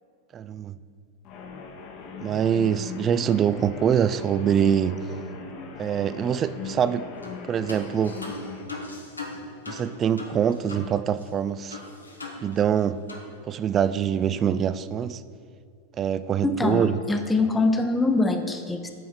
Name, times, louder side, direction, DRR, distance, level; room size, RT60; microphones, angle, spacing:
voice 1, 0.3-0.8 2.2-5.0 5.8-7.1 7.5-8.2 9.7-11.8 12.4-13.0 13.5-15.2 16.0-17.0, right 8 dB, 25° right, 0.3 m, -24 dB
sound 1, 1.2-8.7, left 4 dB, 40° left, 1.1 m, -39 dB
sound 2, 7.2-7.4 7.7-10.9 11.2-11.3 11.7-12.8 13.1-13.3, left 3 dB, 80° left, 1.2 m, -39 dB
voice 2, 16.4-18.9, left 2 dB, 10° left, 0.7 m, -23 dB
9.2 x 4.8 x 6.0 m
figure-of-eight pair, 90°, 0 cm